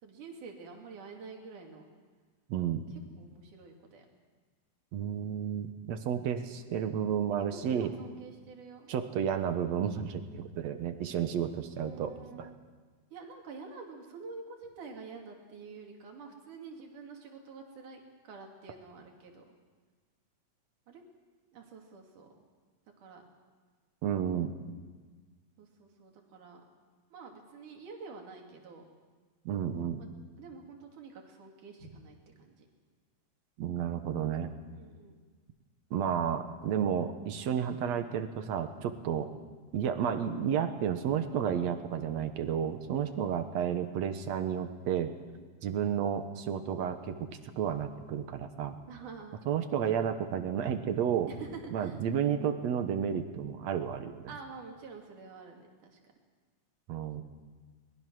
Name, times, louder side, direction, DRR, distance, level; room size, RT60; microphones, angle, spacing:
voice 1, 0.0-1.9 2.9-4.1 7.4-8.9 11.8-12.6 13.1-19.5 20.9-21.0 21.5-22.3 23.0-23.2 25.6-26.6 27.1-28.9 30.0-30.1 30.4-32.7 34.7-35.1 42.9-43.4 48.9-49.4 51.3-52.0 54.3-56.0, right 4 dB, 85° right, 1 dB, 4.1 m, -48 dB
voice 2, 2.5-2.8 4.9-7.9 8.9-12.5 24.0-24.5 29.5-30.0 33.6-34.5 35.9-39.3 39.7-45.1 45.6-47.3 47.6-48.8 49.5-51.3 51.7-54.3 56.9-57.2, right 8 dB, 65° right, 9 dB, 2.2 m, -32 dB
22.5 x 21.0 x 6.2 m, 1.4 s
omnidirectional pair, 3.5 m